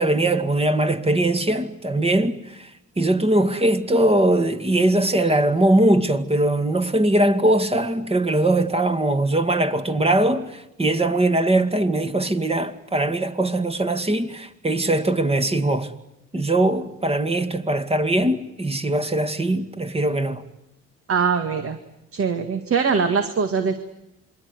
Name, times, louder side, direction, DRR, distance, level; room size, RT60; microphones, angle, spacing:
voice 1, 0.0-2.7 3.0-15.9 16.3-20.4, right 1 dB, 20° right, 2.1 m, -21 dB
voice 2, 21.1-21.8 22.1-23.8, right 5 dB, 50° right, 2.1 m, -22 dB
27.0 x 22.5 x 9.7 m
cardioid pair, 90°, 30 cm